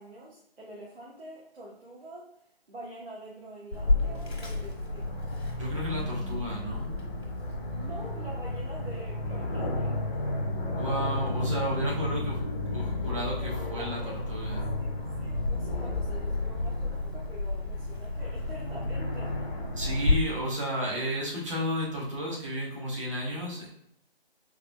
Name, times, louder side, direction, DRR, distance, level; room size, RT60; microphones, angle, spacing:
voice 1, 0.0-2.3 2.7-5.2 7.8-10.4 13.4-14.3 14.8-19.3, right 1 dB, 80° right, -5 dB, 1.1 m, -45 dB
Aircraft, 3.7-20.1, left 2 dB, 75° left, 1.2 m, -31 dB
voice 2, 5.6-6.9 10.8-14.0 14.3-14.6 19.8-23.7, equal, 30° right, -5 dB, 1.0 m, -32 dB
3.9 x 2.9 x 2.2 m, 0.73 s
hypercardioid pair, 165°, 31 cm